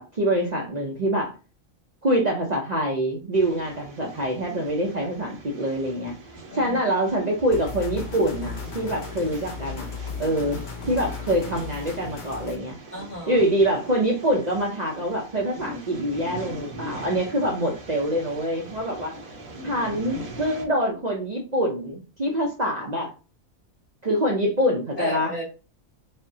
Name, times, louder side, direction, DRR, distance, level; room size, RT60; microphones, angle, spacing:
voice 1, 0.0-1.3 2.0-6.1 6.6-9.9 10.2-10.6 10.9-12.8 13.3-19.1 19.6-23.1 24.0-25.3, right 1 dB, 45° right, -1 dB, 0.6 m, -25 dB
sound 1, 3.3-20.6, right 1 dB, 80° right, 1.4 m, -41 dB
sound 2, 7.5-12.6, left 6 dB, 50° left, 0.6 m, -36 dB
voice 2, 12.9-13.4 25.0-25.4, left 1 dB, 80° left, -3 dB, 2.3 m, -32 dB
5.0 x 2.1 x 2.6 m, 0.34 s
omnidirectional pair, 1.4 m